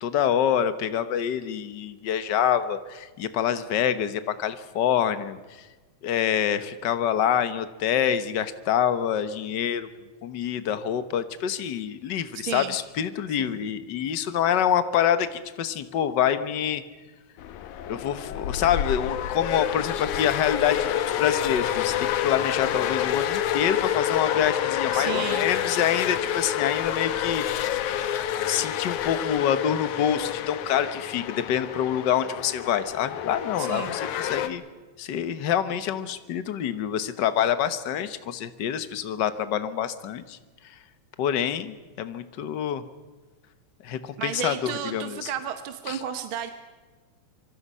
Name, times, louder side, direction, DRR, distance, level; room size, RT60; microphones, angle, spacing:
voice 1, 0.0-5.7 6.0-9.9 10.2-16.8 17.9-27.4 28.5-34.6 35.0-40.4 41.2-42.8 43.8-45.3 45.9-46.0, left 9 dB, 60° left, 12 dB, 1.1 m, -26 dB
voice 2, 12.4-12.8 13.3-13.6 24.9-25.5 33.6-34.0 44.2-46.5, right 9 dB, 55° right, 8 dB, 1.6 m, -32 dB
sound 1, 17.4-34.5, left 11 dB, 85° left, 2.5 m, -28 dB
26.0 x 24.5 x 5.6 m, 1.3 s
omnidirectional pair, 3.4 m